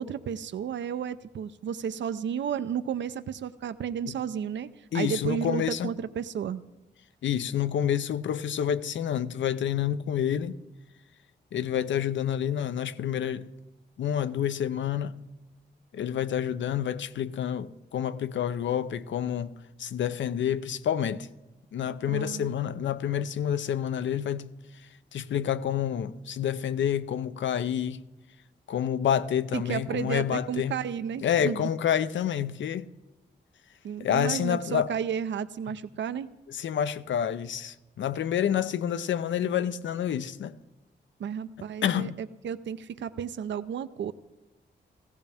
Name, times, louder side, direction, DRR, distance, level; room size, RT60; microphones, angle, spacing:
voice 1, 0.0-6.6 22.1-22.5 29.5-31.7 33.8-36.3 41.2-44.1, right 8 dB, 80° right, 0.6 m, -32 dB
voice 2, 4.9-5.9 7.2-10.5 11.5-13.5 14.0-15.1 15.9-19.5 19.8-21.3 21.7-24.5 25.1-28.0 28.7-30.8 31.2-32.9 34.0-34.9 36.5-40.5 41.8-42.2, left 9 dB, 85° left, 0.6 m, -28 dB
17.0 x 15.5 x 3.5 m
cardioid pair, 50°, 19 cm